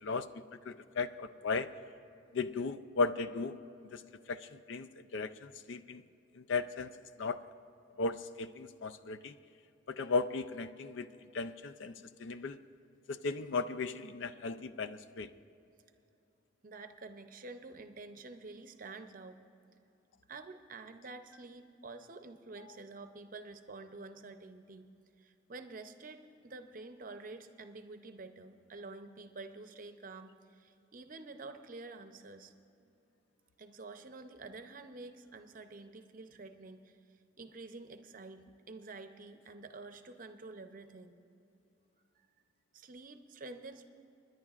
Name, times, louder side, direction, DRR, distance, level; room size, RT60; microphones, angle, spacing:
voice 1, 0.0-1.7 2.3-3.6 3.9-4.0 4.3-6.0 6.3-7.4 8.0-9.3 9.9-11.1 11.3-12.6 13.1-15.3, left 4 dB, 70° left, 13 dB, 0.4 m, -36 dB
voice 2, 16.6-19.4 20.3-24.9 25.2-32.5 33.6-37.0 37.4-41.1 42.2-42.3 42.7-43.9, right 3 dB, 45° right, 8 dB, 0.6 m, -49 dB
29.0 x 10.5 x 2.4 m, 2.8 s
head